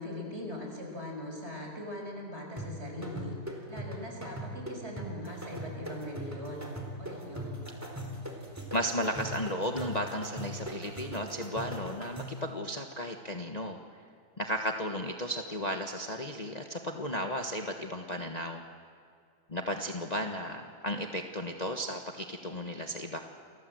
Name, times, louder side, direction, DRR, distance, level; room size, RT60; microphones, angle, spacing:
voice 1, 0.0-3.3 3.7-6.7 7.0-7.7, left 1 dB, 40° right, 1 dB, 6.2 m, -41 dB
sound 1, 2.6-12.5, right 1 dB, 10° right, 3.6 m, -40 dB
voice 2, 8.7-13.8 14.4-18.6 19.5-23.2, equal, 25° left, 3 dB, 1.4 m, -34 dB
29.5 x 24.0 x 7.9 m, 2.3 s
omnidirectional pair, 1.8 m